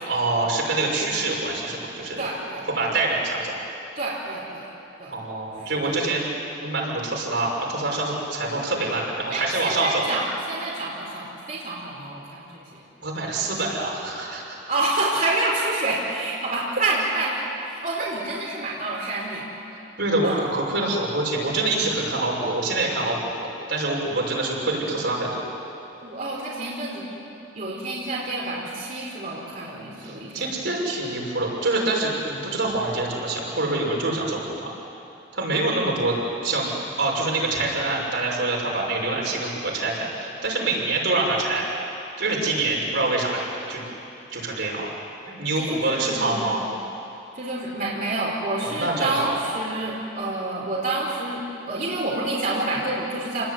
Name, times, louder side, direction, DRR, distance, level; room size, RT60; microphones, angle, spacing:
voice 1, 0.1-2.2 2.7-3.5 5.1-6.2 6.6-10.0 13.0-14.6 20.0-25.4 30.0-34.7 35.3-36.2 36.4-41.7 42.2-43.4 43.7-43.8 44.3-44.9 45.4-46.6 48.6-49.3, right 2 dB, 75° right, -2 dB, 6.4 m, -25 dB
voice 2, 2.2-2.8 3.9-4.7 5.0-5.2 5.7-6.0 9.3-12.8 13.1-13.5 14.7-19.5 20.2-20.5 26.0-27.1 27.5-30.7 45.3-46.6 47.3-53.5, right 2 dB, 45° right, -5 dB, 4.8 m, -28 dB
29.5 x 21.0 x 9.7 m, 2.9 s
head